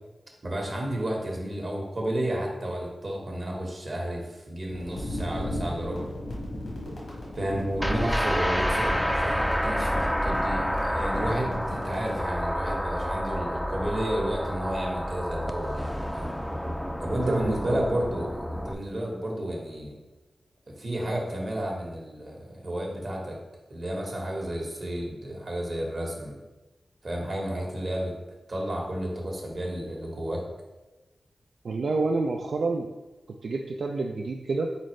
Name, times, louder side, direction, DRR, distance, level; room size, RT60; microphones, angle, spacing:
voice 1, 0.4-6.1 7.3-16.4 17.0-20.0 20.7-23.4 23.7-26.3 27.0-28.1 28.5-30.5, right 1 dB, 55° right, -1 dB, 1.2 m, -32 dB
sound 1, 4.7-12.2, left 1 dB, 90° left, 1.4 m, -36 dB
sound 2, 7.8-18.7, equal, ahead, 0.4 m, -29 dB
voice 2, 17.3-17.8 31.6-32.9 33.4-34.7, right 3 dB, 80° right, 1 dB, 0.3 m, -28 dB
4.3 x 3.9 x 3.2 m, 1.1 s
cardioid pair, 65°, 0 cm